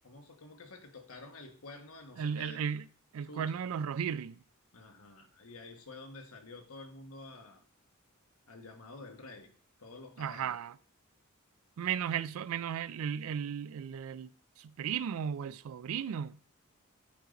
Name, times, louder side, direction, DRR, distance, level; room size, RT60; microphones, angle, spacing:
voice 1, 0.0-2.6 3.3-3.6 4.7-7.6 8.5-9.5 9.8-10.6, left 2 dB, 80° left, 1.2 m, -49 dB
voice 2, 2.2-2.8 3.1-4.4 10.2-10.8 11.8-14.3 14.6-16.4, right 8 dB, 80° right, 0.3 m, -35 dB
8.4 x 4.1 x 3.9 m
head